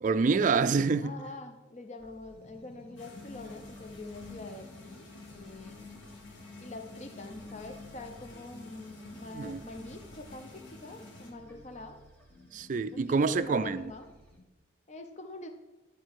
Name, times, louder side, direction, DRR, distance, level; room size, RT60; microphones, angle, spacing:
voice 1, 0.0-1.1 9.3-9.6 12.5-13.8, right 4 dB, 40° right, 0.3 m, -26 dB
voice 2, 1.0-5.9 6.6-12.0 12.9-14.1 14.9-15.5, left 2 dB, 35° left, 0.6 m, -45 dB
sound 1, 2.0-14.4, left 1 dB, 10° left, 1.4 m, -56 dB
sound 2, 3.0-11.3, left 3 dB, 70° left, 1.3 m, -48 dB
11.0 x 4.5 x 4.7 m
head